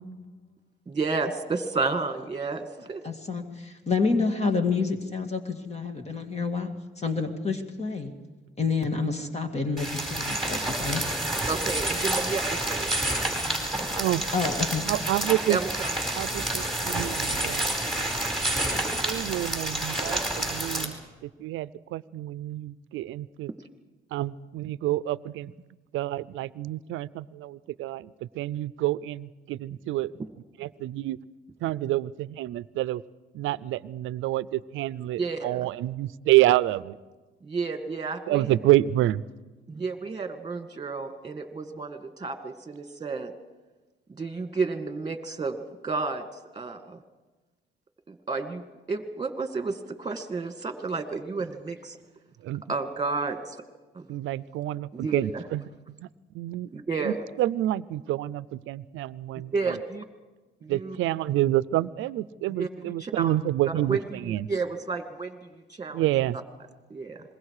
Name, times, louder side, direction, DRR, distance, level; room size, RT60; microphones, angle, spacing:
voice 1, 0.9-3.0 11.5-13.4 15.5-15.9 35.2-35.6 37.4-38.5 39.7-43.3 44.1-45.6 45.8-46.3 46.5-47.0 48.1-48.6 48.9-52.0 52.7-53.6 53.9-54.1 54.9-55.4 56.7-57.2 59.5-60.0 60.6-61.0 62.6-63.4 63.9-66.1 66.9-67.2, right 4 dB, 20° right, 7 dB, 2.1 m, -31 dB
voice 2, 3.0-8.1 8.6-11.0 13.4-13.8 14.3-14.9, left 4 dB, 35° left, 5 dB, 2.2 m, -28 dB
sound 1, 9.8-20.8, right 1 dB, ahead, 4.9 m, -29 dB
voice 3, 14.8-15.6 16.2-18.2 19.0-21.0 21.4-23.5 24.1-25.5 25.9-30.1 30.6-31.2 31.6-33.0 33.3-37.0 38.3-39.2 52.4-52.6 54.1-55.6 56.0-56.1 56.3-56.7 57.0-59.8 60.7-64.5 65.9-66.4, right 15 dB, 85° right, 19 dB, 0.6 m, -28 dB
26.5 x 21.5 x 4.9 m, 1.2 s
cardioid pair, 90°, 20 cm